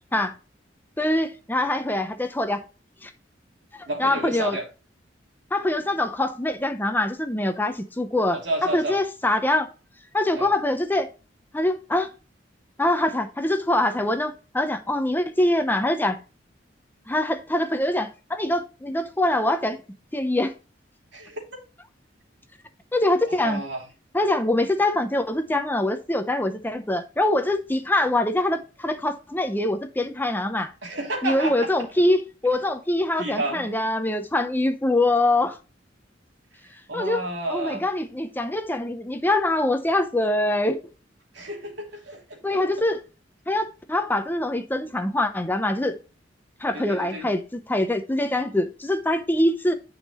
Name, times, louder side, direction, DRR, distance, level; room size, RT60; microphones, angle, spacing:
voice 1, 1.0-2.6 3.0-3.1 3.8-4.6 5.5-9.7 10.1-11.1 11.5-12.1 12.8-16.2 17.1-19.8 20.1-20.5 22.9-23.6 24.1-30.7 31.2-35.6 36.9-37.2 37.5-40.8 42.4-43.0 43.5-46.0 46.6-49.7, left 1 dB, 10° left, 0.7 m, -24 dB
voice 2, 3.9-4.6 8.3-9.0 10.3-10.5 21.1-21.4 23.2-23.8 30.8-31.7 33.2-33.7 36.9-37.9 41.3-42.6 46.7-47.3, right 2 dB, 70° right, 3.0 m, -31 dB
10.5 x 5.5 x 3.1 m
head